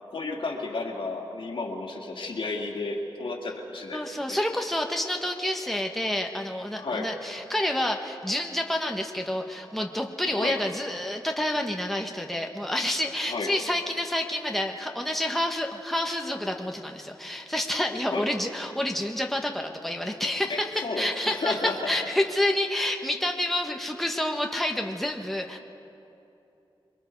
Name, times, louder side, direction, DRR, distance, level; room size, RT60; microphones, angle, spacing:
voice 1, 0.1-4.4 6.8-7.1 10.4-10.6 13.3-13.5 18.1-18.3 20.5-21.9, left 3 dB, 70° left, 0 dB, 2.5 m, -32 dB
voice 2, 3.9-25.6, left 1 dB, ahead, 2 dB, 1.4 m, -28 dB
26.5 x 21.5 x 4.7 m, 2.9 s
cardioid pair, 70°, 9 cm